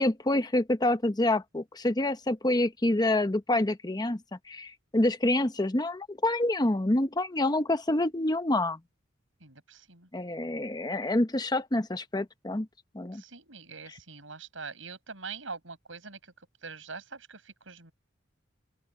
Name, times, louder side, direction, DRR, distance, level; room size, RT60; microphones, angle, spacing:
voice 1, 0.0-4.2 4.5-8.8 10.1-12.7 12.9-13.2, left 1 dB, 20° left, 0.9 m, -27 dB
voice 2, 9.4-10.1 13.1-17.9, right 4 dB, 80° right, 6.2 m, -44 dB
open air
head